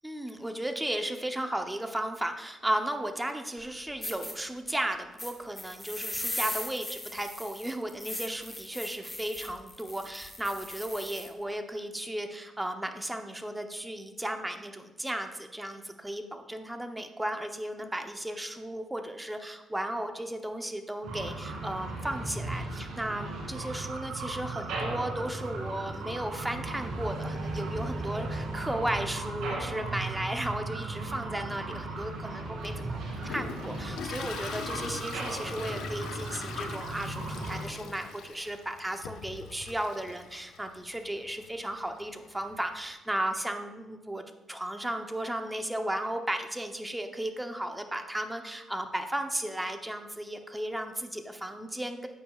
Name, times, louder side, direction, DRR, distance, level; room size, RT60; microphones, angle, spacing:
voice 1, 0.0-33.0 33.2-52.1, right 1 dB, 10° right, 5 dB, 0.8 m, -35 dB
sound 1, 3.6-3.7 4.0-4.3 5.2-11.3, left 1 dB, 10° left, 1.2 m, -38 dB
sound 2, 21.0-37.6, right 2 dB, 80° right, 2.5 m, -36 dB
Toilet flush, 32.6-42.9, left 7 dB, 80° left, 0.6 m, -43 dB
8.9 x 8.5 x 2.4 m, 1.1 s
cardioid pair, 90°, 0 cm